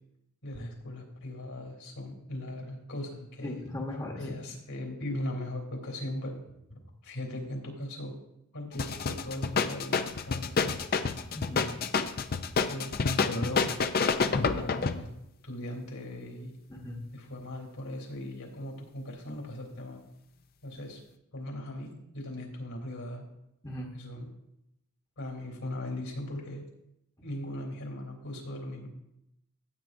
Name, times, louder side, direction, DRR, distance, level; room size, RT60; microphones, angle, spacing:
voice 1, 0.4-3.6 4.2-6.4 6.7-8.1 8.5-10.8 12.7-13.7 14.2-15.1 15.4-16.5 17.1-20.0 20.6-21.0 21.3-23.2 23.9-24.3 25.2-26.6 27.2-28.9, left 1 dB, 75° left, 1 dB, 3.3 m, -38 dB
voice 2, 3.4-4.4 11.3-11.8 14.5-14.6 16.7-17.1 23.6-23.9, left 1 dB, 15° left, -1 dB, 1.1 m, -38 dB
sound 1, 8.7-15.0, left 5 dB, 45° left, 0.5 m, -28 dB
15.5 x 8.6 x 2.6 m, 0.83 s
head